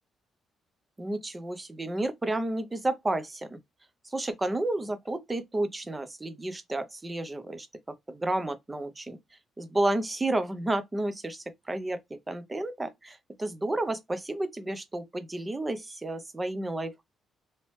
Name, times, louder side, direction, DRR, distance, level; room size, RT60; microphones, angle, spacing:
voice 1, 1.0-3.6 4.0-7.7 8.1-9.2 9.6-12.0 12.3-17.0, right 2 dB, 20° right, 0.7 m, -31 dB
3.0 x 2.9 x 3.1 m
cardioid pair, 90°, 0 cm